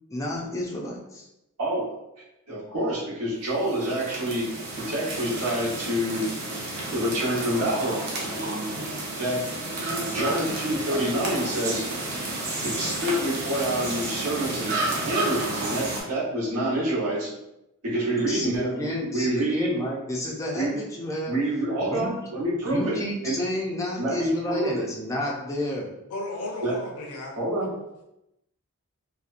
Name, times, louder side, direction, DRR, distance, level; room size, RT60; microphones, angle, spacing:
voice 1, 0.1-1.3 18.2-21.4 21.8-22.1 22.7-25.9, left 1 dB, 15° left, -3 dB, 0.4 m, -30 dB
voice 2, 2.5-4.5 4.8-6.3 6.9-8.8 9.2-9.4 10.1-11.8 12.6-17.3 17.8-18.7 19.1-19.7 20.5-20.7 21.3-23.0 23.2-23.3 24.0-24.9 26.6-26.8 27.4-27.7, right 1 dB, 80° right, -7 dB, 0.9 m, -27 dB
sound 1, 3.5-16.0, right 2 dB, 45° right, 0.6 m, -31 dB
voice 3, 26.1-27.7, left 2 dB, 75° left, -1 dB, 0.7 m, -35 dB
2.7 x 2.1 x 2.5 m, 0.88 s
head